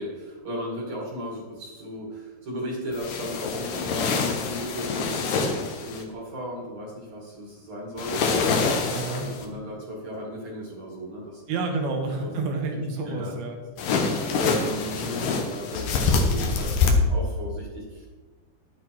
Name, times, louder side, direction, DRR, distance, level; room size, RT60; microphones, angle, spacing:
voice 1, 0.0-8.2 8.6-11.4 12.2-12.3 13.0-13.3 13.8-18.1, left 1 dB, 45° right, -3 dB, 2.9 m, -35 dB
sound 1, 2.9-6.0 8.0-9.5 13.8-16.9, left 4 dB, 65° left, 2.2 m, -26 dB
voice 2, 8.9-9.3 11.5-13.6 14.4-14.5, right 3 dB, 65° right, 2 dB, 3.2 m, -29 dB
10.5 x 8.8 x 4.7 m, 1.3 s
omnidirectional pair, 5.1 m